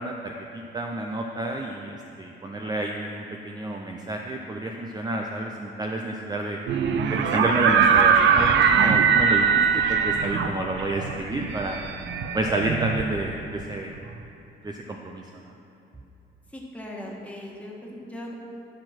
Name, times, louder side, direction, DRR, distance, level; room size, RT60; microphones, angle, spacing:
voice 1, 0.0-6.6 7.1-8.5 8.8-11.8 12.3-13.9 14.6-15.3, right 1 dB, 20° right, 2 dB, 0.6 m, -29 dB
sound 1, 6.7-13.5, right 6 dB, 70° right, 0.6 m, -21 dB
voice 2, 16.5-18.3, left 1 dB, 5° left, -3 dB, 1.7 m, -38 dB
12.0 x 4.4 x 6.0 m, 2.9 s
cardioid pair, 90°, 20 cm